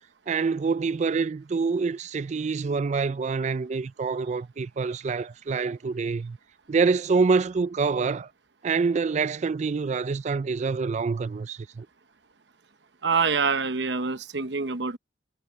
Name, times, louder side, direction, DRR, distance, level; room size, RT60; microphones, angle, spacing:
voice 1, 0.3-6.4 6.7-8.3 8.6-11.9, right 4 dB, 40° right, 0.4 m, -26 dB
voice 2, 13.0-15.0, right 4 dB, 65° right, 1.0 m, -25 dB
head